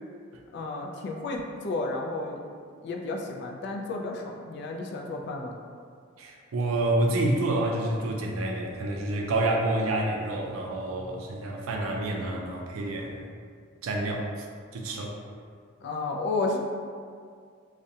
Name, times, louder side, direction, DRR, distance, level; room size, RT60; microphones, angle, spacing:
voice 1, 0.5-2.4 2.8-5.5 15.8-16.6, left 3 dB, 55° left, 1 dB, 0.3 m, -32 dB
voice 2, 6.2-13.3 13.8-14.3 14.7-15.1, right 2 dB, 80° right, 1 dB, 0.4 m, -28 dB
2.3 x 2.1 x 2.7 m, 2.1 s
head